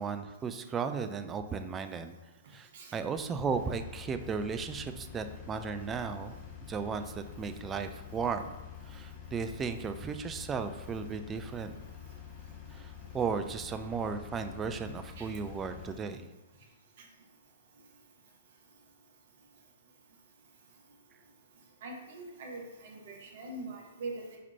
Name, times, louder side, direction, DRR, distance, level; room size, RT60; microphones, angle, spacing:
voice 1, 0.0-2.1 2.5-6.4 6.7-8.5 8.9-11.7 12.7-16.3, right 5 dB, 15° right, 8 dB, 0.3 m, -35 dB
Engine, 3.3-16.0, left 8 dB, 25° left, 0.8 m, -47 dB
voice 2, 21.8-24.4, right 2 dB, 50° right, 0 dB, 1.0 m, -42 dB
4.3 x 4.1 x 2.8 m, 1.2 s
figure-of-eight pair, 110°, 0 cm